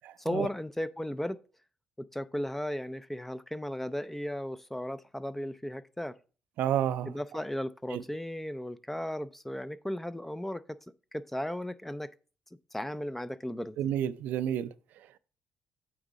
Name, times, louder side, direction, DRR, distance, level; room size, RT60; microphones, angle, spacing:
voice 1, 0.2-1.4 2.0-6.2 7.0-10.6 11.1-12.1 12.7-13.8, left 1 dB, 5° left, 0.4 m, -35 dB
voice 2, 6.6-7.1 7.9-8.0 13.8-14.7, right 10 dB, 80° right, 0.4 m, -29 dB
8.8 x 3.6 x 4.1 m
cardioid pair, 80°, 3 cm